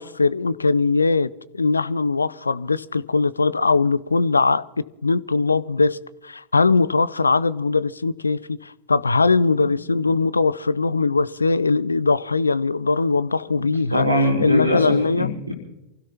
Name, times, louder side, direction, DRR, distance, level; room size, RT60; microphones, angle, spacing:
voice 1, 0.0-14.1 14.4-15.3, left 3 dB, 80° left, 0.4 m, -21 dB
voice 2, 13.9-15.5, left 1 dB, 85° right, 3.8 m, -22 dB
27.5 x 16.5 x 2.9 m
figure-of-eight pair, 90°, 0 cm